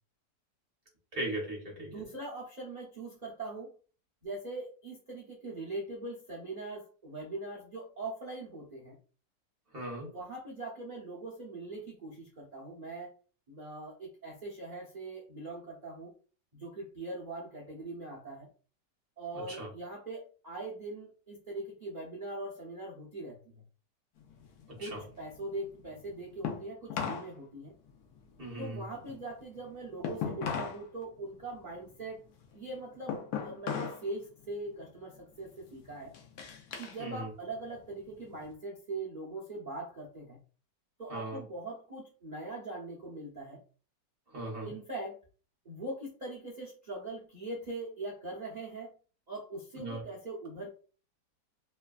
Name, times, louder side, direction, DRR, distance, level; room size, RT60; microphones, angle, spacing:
voice 1, 1.1-1.9 9.7-10.1 19.5-19.7 24.8-25.0 28.4-28.8 37.0-37.3 41.1-41.4 44.3-44.7 49.8-50.0, right 1 dB, 40° right, -3 dB, 1.1 m, -38 dB
voice 2, 1.8-3.7 4.2-9.0 10.1-13.1 13.5-16.1 16.5-18.5 19.2-23.6 24.8-27.7 28.6-32.2 32.5-36.2 36.8-40.4 41.0-43.6 44.6-45.2 45.6-48.9 49.3-50.7, right 2 dB, 75° right, -3 dB, 0.4 m, -41 dB
sound 1, 24.2-27.3 27.6-30.8 31.2-34.1 34.4-34.8 35.4-37.0 37.4-38.5, left 7 dB, 70° left, 1.0 m, -39 dB
3.2 x 2.3 x 2.3 m, 0.38 s
omnidirectional pair, 1.8 m